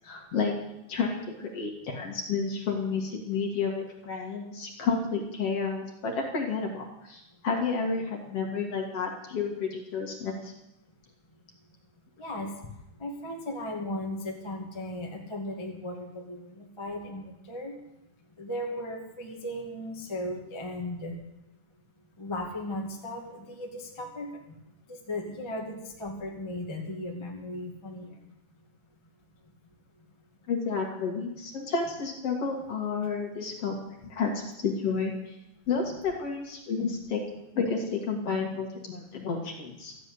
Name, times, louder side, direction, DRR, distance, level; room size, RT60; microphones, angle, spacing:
voice 1, 0.0-0.5 0.9-10.5 30.5-33.8 34.0-35.3 35.7-37.2 37.5-39.9, left 5 dB, 50° left, 1 dB, 2.6 m, -31 dB
voice 2, 12.2-12.5 13.0-17.7 18.4-21.1 22.2-24.3 24.9-28.1, left 1 dB, 10° left, -1 dB, 1.5 m, -36 dB
14.0 x 7.8 x 9.6 m, 0.88 s
omnidirectional pair, 3.9 m